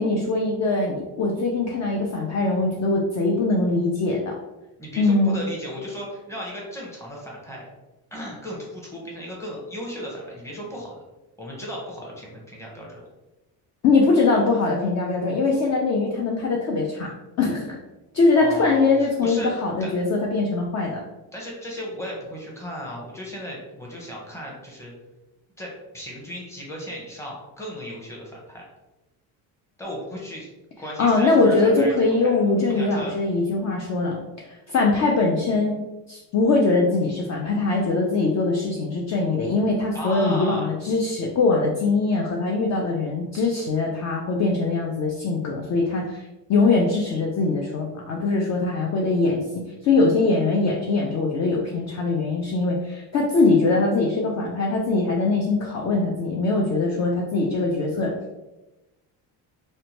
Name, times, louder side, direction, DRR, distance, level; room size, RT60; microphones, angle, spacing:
voice 1, 0.0-4.4 5.0-5.4 13.8-17.1 17.4-17.8 18.1-21.0 31.0-34.2 34.4-35.8 36.1-46.2 46.5-49.4 49.8-58.1, left 3 dB, 40° left, -1 dB, 0.4 m, -22 dB
voice 2, 4.8-7.7 8.1-10.9 11.4-13.0 18.4-19.5 19.8-19.9 21.3-24.9 25.6-28.6 29.8-30.5 30.8-33.1 39.9-40.7, equal, 5° left, -3 dB, 0.8 m, -35 dB
2.7 x 2.1 x 2.8 m, 1.0 s
cardioid pair, 115°, 44 cm